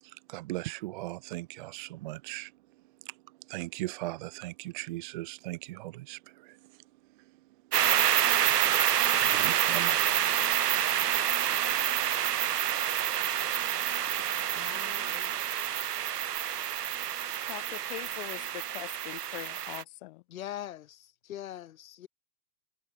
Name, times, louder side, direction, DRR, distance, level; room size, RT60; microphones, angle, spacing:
voice 1, 0.0-2.5 3.0-6.8 7.2-7.3 8.0-10.1 11.9-12.0, right 19 dB, 30° right, 0.6 m, -39 dB
sound 1, 7.7-19.8, right 10 dB, 80° right, 0.6 m, -28 dB
voice 2, 14.5-15.5 20.3-22.1, left 12 dB, 60° left, 1.5 m, -43 dB
voice 3, 17.5-20.2, left 21 dB, 35° left, 0.8 m, -42 dB
figure-of-eight pair, 110°, 48 cm